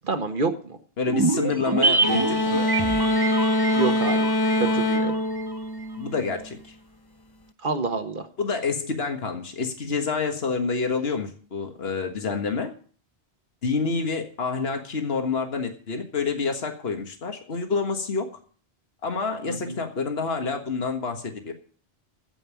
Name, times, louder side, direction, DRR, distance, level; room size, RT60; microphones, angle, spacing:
voice 1, 0.0-0.8 3.7-4.3 4.6-5.1 7.6-8.3 19.5-19.8, right 3 dB, 50° right, 7 dB, 1.6 m, -27 dB
voice 2, 1.0-2.6 6.0-6.7 8.4-12.7 13.6-18.3 19.0-21.5, left 4 dB, 65° left, 5 dB, 1.8 m, -28 dB
sound 1, 1.1-5.6 5.8-5.9, right 3 dB, 30° right, 0.5 m, -26 dB
sound 2, 2.0-6.5, left 1 dB, 30° left, 0.5 m, -24 dB
15.5 x 5.5 x 8.5 m, 0.43 s
omnidirectional pair, 1.1 m